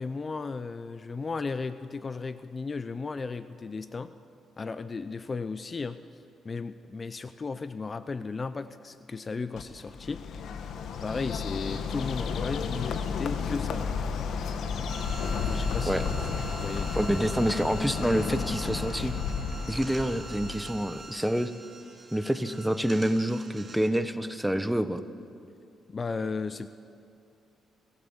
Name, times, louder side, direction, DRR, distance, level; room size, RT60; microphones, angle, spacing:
voice 1, 0.0-4.1 4.6-6.0 6.4-10.3 11.0-14.0 15.4-16.0 16.5-17.1 25.9-26.7, left 4 dB, 30° left, 13 dB, 0.6 m, -35 dB
Bird, 9.6-21.0, left 5 dB, 70° left, 1.6 m, -32 dB
sound 1, 14.9-23.9, right 3 dB, 30° right, 2.6 m, -45 dB
voice 2, 17.0-19.1 19.7-21.5 22.1-25.0, right 1 dB, 5° right, 11 dB, 1.0 m, -27 dB
27.0 x 16.5 x 7.3 m, 2.7 s
cardioid pair, 90°, 0 cm